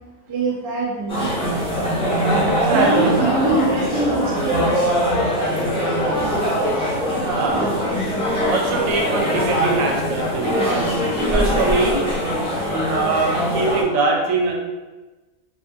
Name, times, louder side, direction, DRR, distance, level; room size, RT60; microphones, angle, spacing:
voice 1, 0.3-1.6 2.3-5.3, right 2 dB, 55° right, -3 dB, 0.3 m, -24 dB
sound 1, 1.1-13.8, equal, 5° left, 0.5 m, -21 dB
voice 2, 2.4-3.2 7.0-7.9 8.5-12.0 12.9-14.5, right 3 dB, 90° right, 0 dB, 1.0 m, -23 dB
2.5 x 2.3 x 2.6 m, 1.2 s
omnidirectional pair, 1.4 m